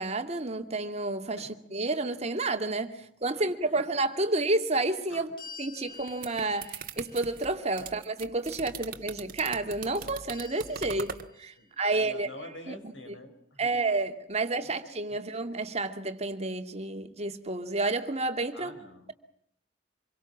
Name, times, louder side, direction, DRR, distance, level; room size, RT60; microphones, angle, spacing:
voice 1, 0.0-5.3 5.6-12.3 12.7-12.9 13.6-18.7, right 2 dB, 35° right, 2.4 m, -30 dB
voice 2, 3.3-3.7 5.1-5.3 11.6-13.8 15.1-15.2 18.5-19.1, left 2 dB, 90° left, 6.0 m, -47 dB
sound 1, 5.4-8.5 10.3-12.0, left 4 dB, 25° left, 3.7 m, -50 dB
sound 2, 5.9-11.3, right 6 dB, 50° right, 1.9 m, -41 dB
27.0 x 23.5 x 7.3 m
head